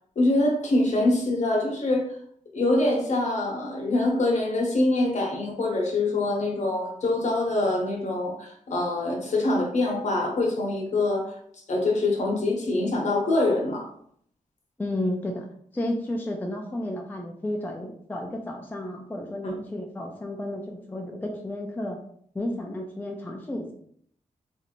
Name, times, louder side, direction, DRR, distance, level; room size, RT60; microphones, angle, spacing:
voice 1, 0.2-2.1 2.5-11.3 11.7-13.9, left 2 dB, 55° left, -1 dB, 0.9 m, -24 dB
voice 2, 14.8-15.4 15.7-22.0 22.3-23.7, left 1 dB, 15° left, 1 dB, 0.3 m, -32 dB
3.1 x 2.6 x 2.9 m, 0.64 s
wide cardioid pair, 135°, 14 cm